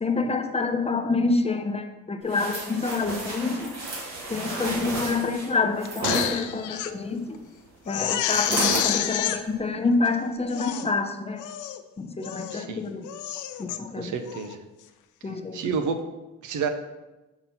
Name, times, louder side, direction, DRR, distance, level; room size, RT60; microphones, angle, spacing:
voice 1, 0.0-3.8 4.3-7.4 7.9-11.4 12.0-13.2 13.6-14.2 15.2-15.7, left 3 dB, 20° left, 6 dB, 0.6 m, -27 dB
sound 1, 2.3-6.3 8.3-8.9 9.4-9.6, right 2 dB, 60° right, 2.1 m, -31 dB
Crying sobbing, 5.8-6.9 7.3-7.4 7.9-9.4 10.0-10.1 10.5-10.9 11.4-11.8 12.2-12.7 13.0-13.8 14.3-14.5, left 11 dB, 80° left, 0.5 m, -29 dB
voice 2, 12.5-12.8 14.0-14.6 15.5-16.0 16.4-16.7, right 6 dB, 80° right, 7 dB, 0.8 m, -29 dB
5.9 x 4.0 x 5.7 m, 1.1 s
cardioid pair, 90°, 30 cm